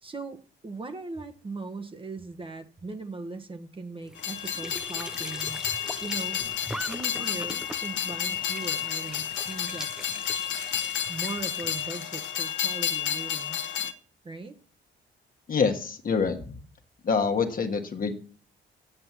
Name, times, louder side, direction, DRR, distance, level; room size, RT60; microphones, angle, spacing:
voice 1, 0.0-5.6 6.0-6.4 6.9-9.9 11.1-13.8 14.2-14.6, right 3 dB, 25° right, 6 dB, 1.3 m, -39 dB
Squeak / Sink (filling or washing) / Trickle dribble, 4.0-11.9, right 1 dB, 5° right, 0.6 m, -42 dB
Train, 4.2-13.9, left 9 dB, 70° left, 1.1 m, -31 dB
voice 2, 15.5-16.6 17.0-18.1, left 5 dB, 45° left, 5 dB, 1.6 m, -26 dB
8.1 x 7.7 x 7.4 m, 0.43 s
cardioid pair, 90°, 20 cm